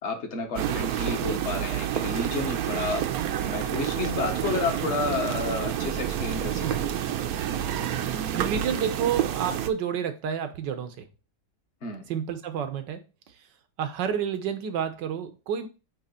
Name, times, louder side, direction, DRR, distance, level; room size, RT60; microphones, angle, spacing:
voice 1, 0.0-3.0 3.4-6.9 11.8-12.0, left 3 dB, 45° left, 1.5 m, -31 dB
sound 1, 0.6-9.7, right 10 dB, 70° right, 1.0 m, -29 dB
voice 2, 8.0-11.1 12.1-13.0 13.8-15.7, right 8 dB, 90° right, 1.6 m, -30 dB
8.6 x 3.1 x 4.2 m
omnidirectional pair, 1.8 m